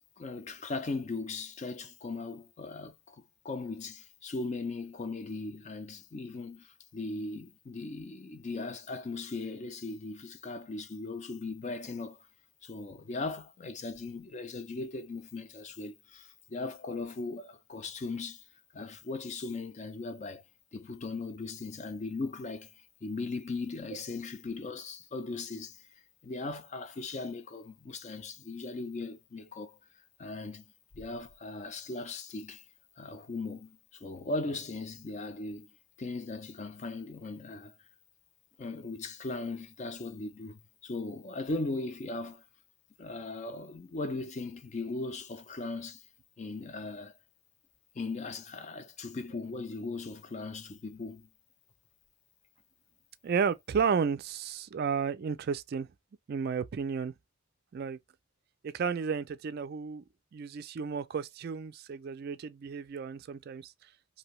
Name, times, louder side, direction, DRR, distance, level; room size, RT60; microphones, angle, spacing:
voice 1, 0.2-12.2 12.6-18.4 18.7-20.4 20.7-22.7 23.0-25.8 26.2-29.8 30.2-30.6 30.9-32.6 33.0-35.7 36.0-37.7 38.6-42.4 43.0-46.0 46.4-47.1 47.9-51.3, left 3 dB, 35° left, 0.4 m, -38 dB
voice 2, 53.2-55.9 56.3-57.1 57.7-58.0 58.6-60.0 60.3-63.7, right 6 dB, 50° right, 0.3 m, -32 dB
2.7 x 2.7 x 3.0 m
head